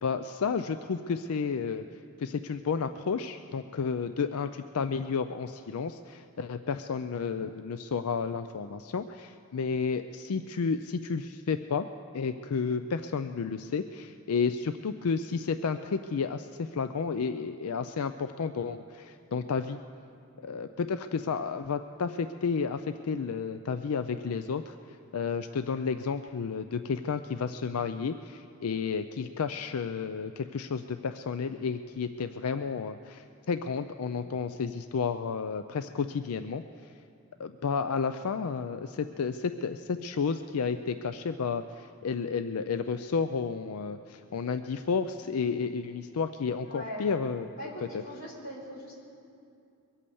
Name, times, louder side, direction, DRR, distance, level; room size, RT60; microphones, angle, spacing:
voice 1, 0.0-1.8 2.2-11.9 12.1-19.8 20.4-24.8 25.1-36.6 37.4-47.5, left 5 dB, 85° left, 9 dB, 0.4 m, -31 dB
voice 2, 46.6-47.1 47.6-49.0, equal, 45° left, -5 dB, 4.2 m, -41 dB
23.0 x 8.5 x 7.0 m, 2.6 s
head